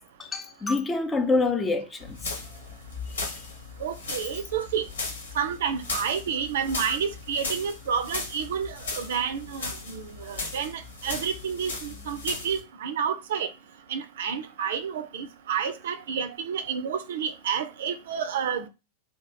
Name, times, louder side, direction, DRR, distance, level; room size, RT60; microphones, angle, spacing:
voice 1, 0.2-2.3, left 3 dB, 15° left, 0.7 m, -26 dB
sound 1, 2.0-12.6, left 3 dB, 70° left, 1.3 m, -37 dB
voice 2, 3.8-4.8 5.3-13.5 13.9-18.7, right 7 dB, 60° right, 0.5 m, -30 dB
3.4 x 2.9 x 4.7 m
figure-of-eight pair, 90°, 0 cm